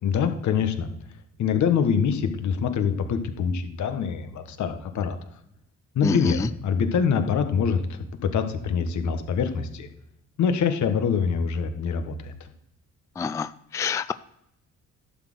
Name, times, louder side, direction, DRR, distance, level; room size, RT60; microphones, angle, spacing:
voice 1, 0.0-0.9 1.4-5.2 5.9-9.9 10.4-12.5, left 6 dB, 70° left, 8 dB, 1.4 m, -25 dB
voice 2, 6.0-6.5 13.2-14.1, left 5 dB, 10° left, 13 dB, 0.3 m, -27 dB
11.5 x 4.3 x 7.7 m, 0.77 s
cardioid pair, 90°, 30 cm